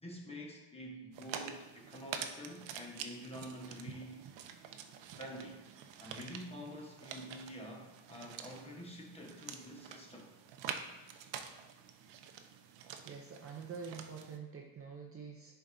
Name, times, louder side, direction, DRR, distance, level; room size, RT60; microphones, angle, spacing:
voice 1, 0.0-4.2 5.1-5.6 6.0-10.3, equal, 15° left, -1 dB, 1.0 m, -48 dB
sound 1, 1.1-14.4, right 7 dB, 70° right, 0.7 m, -47 dB
voice 2, 13.0-15.5, right 6 dB, 30° right, 0 dB, 0.6 m, -46 dB
10.0 x 4.6 x 2.6 m, 1.1 s
cardioid pair, 160°, 46 cm